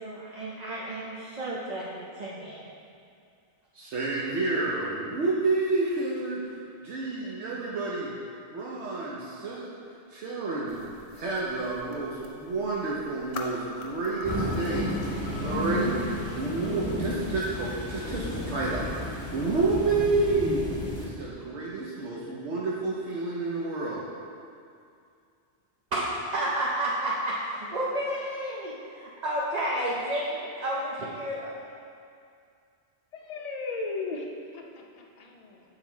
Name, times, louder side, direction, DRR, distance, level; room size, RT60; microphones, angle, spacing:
voice 1, 0.0-2.6 25.9-31.5, right 1 dB, 45° right, -5 dB, 0.7 m, -31 dB
voice 2, 3.7-6.4 6.8-8.1 8.5-9.7 10.1-15.0 15.4-20.6 21.0-24.0, right 3 dB, 75° right, -5 dB, 1.0 m, -29 dB
sound 1, 10.7-16.8, left 3 dB, 65° left, 0.9 m, -43 dB
sound 2, 14.2-21.1, left 1 dB, 10° left, 1.5 m, -33 dB
voice 3, 33.1-35.6, left 3 dB, 45° left, 0 dB, 0.6 m, -36 dB
7.2 x 4.0 x 4.4 m, 2.4 s
omnidirectional pair, 1.2 m